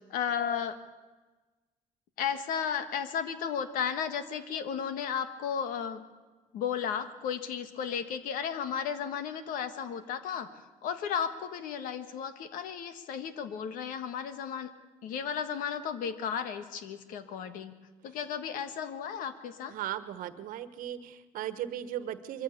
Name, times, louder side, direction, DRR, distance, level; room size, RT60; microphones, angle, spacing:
voice 1, 0.1-0.8 2.2-6.0 6.5-14.7 15.0-17.7 18.0-19.7, left 7 dB, 90° left, 10 dB, 1.5 m, -34 dB
voice 2, 19.7-22.4, right 11 dB, 80° right, 12 dB, 1.3 m, -37 dB
23.0 x 15.0 x 8.4 m, 1.2 s
cardioid pair, 125°, 14 cm